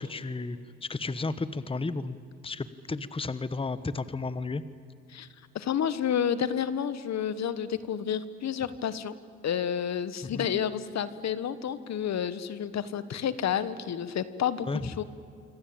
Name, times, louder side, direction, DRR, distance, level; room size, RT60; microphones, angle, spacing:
voice 1, 0.0-2.2 2.4-4.6 10.2-10.5 14.7-15.0, left 3 dB, 20° left, 14 dB, 1.2 m, -33 dB
voice 2, 5.5-9.1 9.4-15.0, left 8 dB, 60° left, 14 dB, 1.5 m, -30 dB
26.5 x 25.0 x 8.9 m, 2.4 s
cardioid pair, 90°, 30 cm